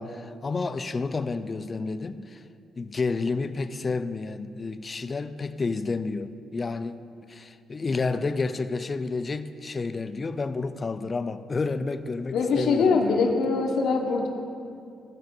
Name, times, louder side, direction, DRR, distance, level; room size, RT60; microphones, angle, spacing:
voice 1, 0.0-2.4 2.8-7.0 7.3-13.4, left 3 dB, 30° left, 0.4 m, -30 dB
voice 2, 12.3-14.3, left 4 dB, 70° left, 0.8 m, -23 dB
13.5 x 5.0 x 3.7 m
cardioid pair, 90°, 0 cm